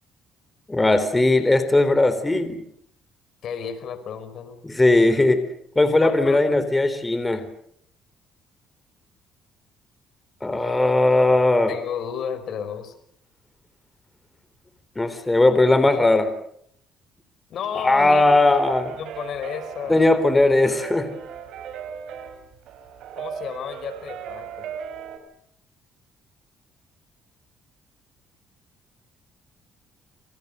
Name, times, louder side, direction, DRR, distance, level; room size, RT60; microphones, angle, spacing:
voice 1, 0.7-2.6 4.6-5.4 5.8-7.5 10.4-11.8 15.0-16.3 17.8-19.0 19.9-21.1, left 2 dB, 15° left, 11 dB, 3.8 m, -18 dB
voice 2, 3.4-4.6 6.0-6.4 11.7-12.9 17.5-18.6 19.0-20.0 23.2-24.7, left 7 dB, 65° left, 11 dB, 5.1 m, -32 dB
sound 1, 18.2-25.2, right 7 dB, 75° right, 6.2 m, -37 dB
28.5 x 27.5 x 6.8 m, 0.69 s
cardioid pair, 95°, 0 cm